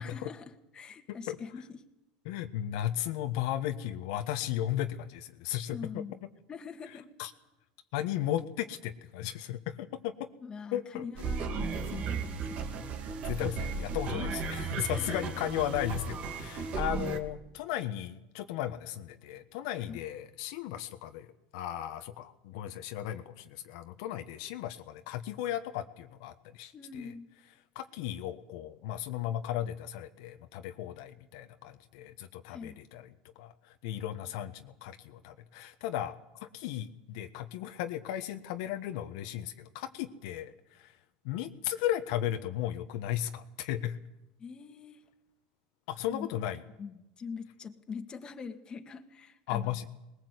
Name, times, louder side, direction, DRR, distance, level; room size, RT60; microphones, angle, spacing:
voice 1, 0.0-1.8 5.7-7.1 10.4-12.8 14.1-14.3 14.9-15.4 16.5-16.7 19.7-20.0 26.7-27.3 32.5-32.8 44.4-45.0 46.1-46.3 46.8-49.8, left 5 dB, 25° left, 7 dB, 1.7 m, -44 dB
voice 2, 2.2-6.0 7.2-7.3 7.9-10.1 10.7-11.1 13.2-21.3 21.5-27.1 27.7-33.1 33.3-36.1 36.4-40.9 41.2-44.0 45.9-46.6 49.5-49.9, left 12 dB, 75° left, 7 dB, 1.3 m, -35 dB
sound 1, 11.2-17.2, right 4 dB, 40° right, 2.4 m, -35 dB
20.5 x 19.5 x 8.2 m, 0.93 s
supercardioid pair, 135°, 3 cm